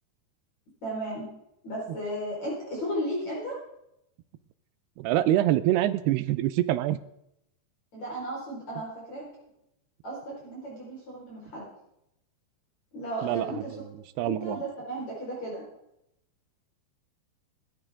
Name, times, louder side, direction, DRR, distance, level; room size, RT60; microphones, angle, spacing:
voice 1, 0.8-1.3 1.6-3.6 7.9-9.3 10.0-11.7 12.9-13.7 14.2-15.6, right 1 dB, 40° left, -5 dB, 6.0 m, -34 dB
voice 2, 5.0-7.0 13.2-13.8 14.2-14.6, right 13 dB, 80° right, 13 dB, 2.7 m, -25 dB
21.5 x 12.5 x 3.8 m, 0.79 s
omnidirectional pair, 4.9 m